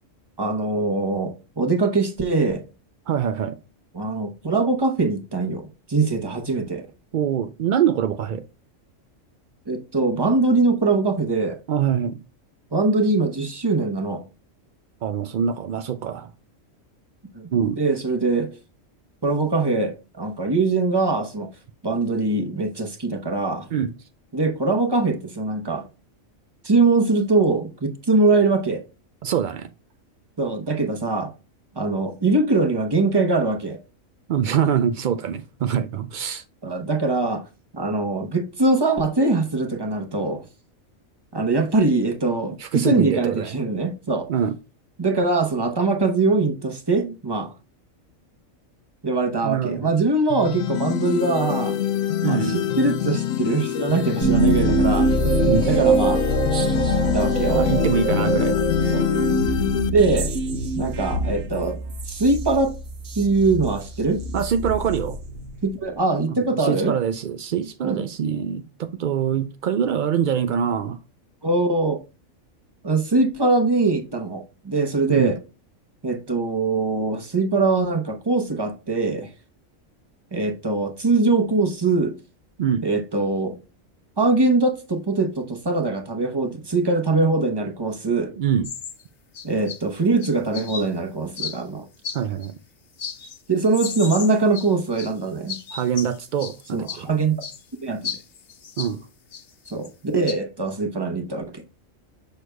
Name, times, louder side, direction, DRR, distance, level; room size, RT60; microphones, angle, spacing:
voice 1, 0.4-2.6 3.9-6.8 9.7-11.6 12.7-14.2 17.3-17.4 17.8-18.5 19.2-21.5 21.8-23.7 24.3-25.9 26.6-28.8 30.4-31.3 31.8-33.8 36.6-37.4 37.7-40.5 41.3-44.3 45.0-47.5 49.0-51.8 52.2-55.1 55.7-56.2 57.1-57.7 58.1-58.4 58.9-59.1 59.9-60.3 60.8-61.8 62.1-62.7 63.2-64.2 65.6-67.0 67.8-68.0 71.4-72.0 72.8-75.4 76.0-79.3 80.3-82.1 82.8-83.6 84.2-88.3 89.4-91.8 93.5-95.5 96.7-97.4 97.8-98.1 99.7-101.6, right 3 dB, 20° right, 0.9 m, -22 dB
voice 2, 3.1-3.6 7.1-8.4 11.7-12.2 15.0-16.3 17.5-17.8 23.7-23.9 29.2-29.7 34.3-36.4 42.6-43.6 44.3-44.5 47.0-47.1 49.4-49.9 52.2-52.7 55.5-55.9 57.5-58.6 64.3-65.2 66.3-71.0 75.1-75.4 82.6-82.9 88.4-88.7 92.1-92.5 95.7-97.1 98.8-99.0, right 8 dB, 85° right, 0.4 m, -24 dB
sound 1, 50.3-59.9, left 11 dB, 90° left, 1.0 m, -25 dB
sound 2, 54.2-65.8, right 2 dB, 65° right, 1.2 m, -24 dB
sound 3, 88.6-89.0 89.3-89.8 90.2-90.9 91.4-91.6 92.0-92.5 93.0-93.4 93.7-95.1 95.5-96.5 96.9-97.0 97.4-97.6 98.0-98.9 99.3-99.9 100.3-100.4, left 6 dB, 55° left, 1.2 m, -33 dB
6.7 x 6.2 x 2.2 m
omnidirectional pair, 1.4 m